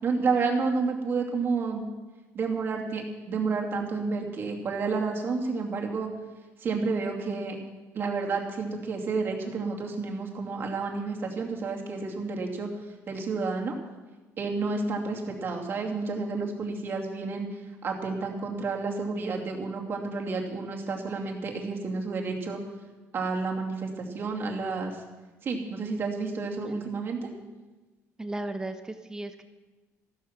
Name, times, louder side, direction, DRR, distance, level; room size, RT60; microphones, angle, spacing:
voice 1, 0.0-1.9 2.3-6.1 6.6-7.6 7.9-12.7 13.1-13.7 14.4-22.6 23.1-25.0 25.4-27.3, right 4 dB, 40° right, 0 dB, 2.6 m, -30 dB
voice 2, 28.2-29.4, right 2 dB, 10° right, 8 dB, 0.9 m, -35 dB
14.5 x 13.0 x 6.0 m, 1.2 s
cardioid pair, 135°, 6 cm